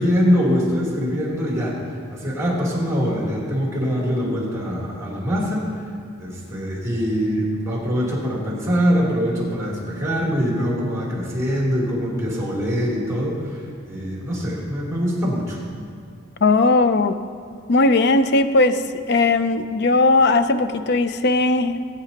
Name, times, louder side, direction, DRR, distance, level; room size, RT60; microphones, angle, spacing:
voice 1, 0.0-5.6 6.2-15.6, equal, 15° right, -5 dB, 3.2 m, -23 dB
voice 2, 16.4-17.2 17.7-18.8 19.1-21.8, left 2 dB, 55° left, 10 dB, 0.5 m, -18 dB
20.0 x 9.3 x 2.9 m, 2.3 s
head